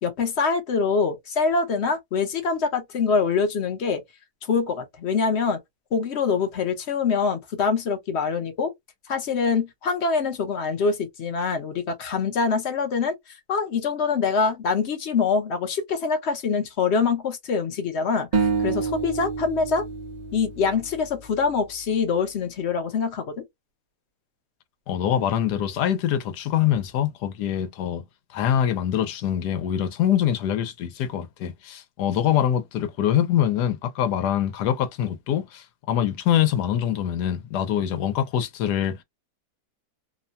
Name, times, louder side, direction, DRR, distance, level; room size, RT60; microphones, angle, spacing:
voice 1, 0.0-4.0 4.5-5.6 5.9-8.7 9.1-19.9 20.3-23.4, left 5 dB, 50° left, 0.9 m, -24 dB
sound 1, 18.3-21.6, right 5 dB, 55° right, 0.4 m, -28 dB
voice 2, 24.9-28.0 28.3-39.0, left 10 dB, 90° left, 1.3 m, -24 dB
3.0 x 2.2 x 2.5 m
omnidirectional pair, 1.7 m